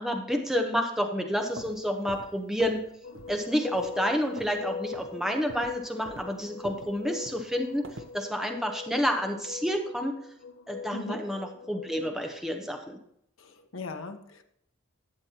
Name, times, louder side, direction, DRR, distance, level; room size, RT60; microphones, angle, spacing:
voice 1, 0.0-2.8 3.3-7.9 8.1-10.1 10.7-13.0, equal, ahead, 3 dB, 0.9 m, -29 dB
sound 1, 1.3-2.9 3.1-3.5 3.7-4.6 4.9-5.1 5.5-8.2, right 2 dB, 75° right, 0.8 m, -46 dB
sound 2, 3.0-12.4, left 5 dB, 70° left, 0.5 m, -42 dB
voice 2, 13.4-14.4, left 2 dB, 85° left, 5 dB, 0.9 m, -38 dB
11.5 x 7.9 x 2.9 m, 0.73 s
head